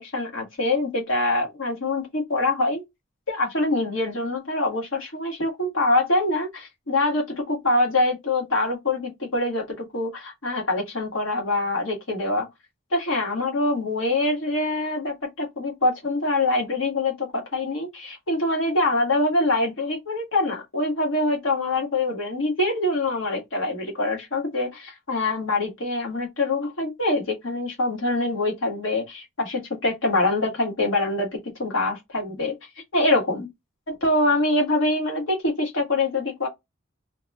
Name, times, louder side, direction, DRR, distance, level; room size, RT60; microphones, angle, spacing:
voice 1, 0.0-2.8 3.3-12.5 12.9-32.5 32.9-33.5 33.9-36.5, left 2 dB, 70° left, 1.3 m, -24 dB
2.9 x 2.1 x 3.4 m
head